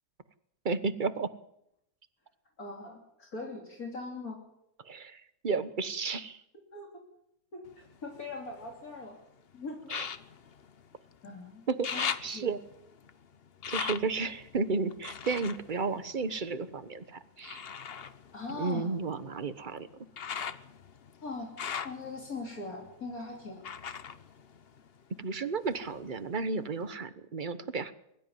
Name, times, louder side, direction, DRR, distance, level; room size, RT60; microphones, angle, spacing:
voice 1, 0.6-1.3 4.8-6.4 9.9-10.1 11.7-12.6 13.7-17.6 18.5-19.9 25.2-27.9, right 4 dB, 35° right, 12 dB, 1.1 m, -33 dB
voice 2, 2.6-4.4 6.7-6.9 7.5-9.1 9.5-9.8 11.2-12.1 12.3-12.5 18.3-18.9 21.2-21.5 21.8-23.7, left 3 dB, 75° left, 0 dB, 3.6 m, -41 dB
sound 1, 7.7-9.0 9.8-11.3 11.6-16.8 17.4-25.3 25.6-26.4 26.9-27.0, left 7 dB, 45° left, 1.0 m, -40 dB
22.5 x 13.0 x 9.4 m, 0.79 s
omnidirectional pair, 1.5 m